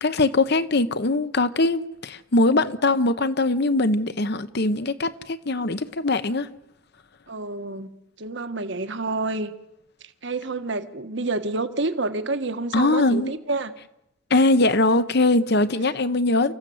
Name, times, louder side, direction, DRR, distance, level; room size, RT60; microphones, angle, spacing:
voice 1, 0.0-6.5 12.7-13.3 14.3-16.5, left 2 dB, 55° left, 1.0 m, -21 dB
voice 2, 7.3-7.9 8.2-9.5 10.2-13.7, right 3 dB, 60° right, 1.4 m, -28 dB
30.0 x 15.0 x 7.8 m
head